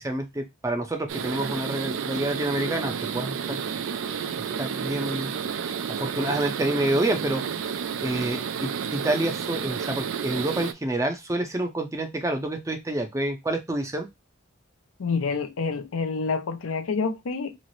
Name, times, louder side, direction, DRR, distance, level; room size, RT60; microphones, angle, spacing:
voice 1, 0.0-3.6 4.6-5.3 5.9-7.4 8.0-14.1, right 1 dB, 15° right, 0.6 m, -28 dB
sound 1, 1.1-10.7, right 7 dB, 65° right, 0.4 m, -31 dB
voice 2, 15.0-17.5, left 4 dB, 85° left, 0.5 m, -28 dB
3.1 x 2.0 x 3.9 m
head